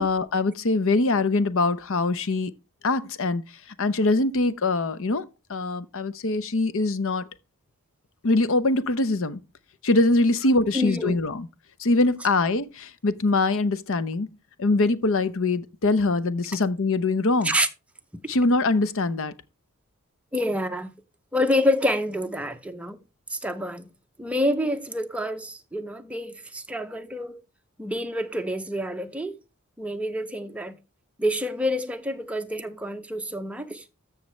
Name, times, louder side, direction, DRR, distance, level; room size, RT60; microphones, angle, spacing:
voice 1, 0.0-2.5 2.8-3.4 3.8-5.2 5.5-7.3 8.2-9.4 9.8-11.5 11.8-14.3 14.6-17.6 18.3-19.3, left 2 dB, 65° left, 0.7 m, -23 dB
voice 2, 10.7-11.2 17.4-17.7 20.3-20.9 21.3-23.0 23.3-23.9 24.2-27.4 27.8-29.4 29.8-30.8 31.2-33.8, left 1 dB, 5° right, 0.7 m, -27 dB
13.5 x 6.4 x 3.2 m
head